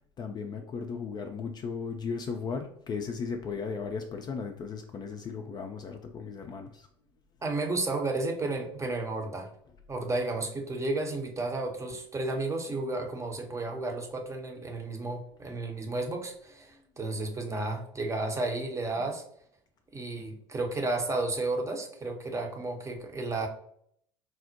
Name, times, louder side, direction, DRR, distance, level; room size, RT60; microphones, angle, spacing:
voice 1, 0.2-6.9 19.0-19.1, left 5 dB, 30° left, 5 dB, 0.4 m, -36 dB
voice 2, 7.4-9.5 9.9-19.2 19.9-23.5, right 2 dB, 20° right, 4 dB, 0.7 m, -32 dB
4.4 x 2.0 x 2.7 m, 0.66 s
figure-of-eight pair, 65°, 15 cm